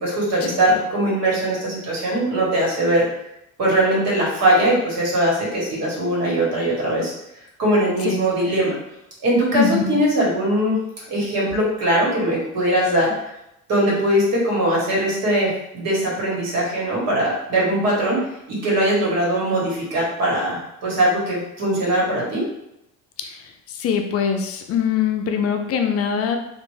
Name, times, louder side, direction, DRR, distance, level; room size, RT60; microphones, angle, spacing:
voice 1, 0.0-3.1 3.6-7.1 7.6-8.7 9.2-10.8 11.1-13.1 13.7-22.4, right 1 dB, 55° right, -4 dB, 1.4 m, -21 dB
voice 2, 23.8-26.4, left 7 dB, 50° left, 5 dB, 0.5 m, -22 dB
3.3 x 2.5 x 3.2 m, 0.85 s
cardioid pair, 145°, 31 cm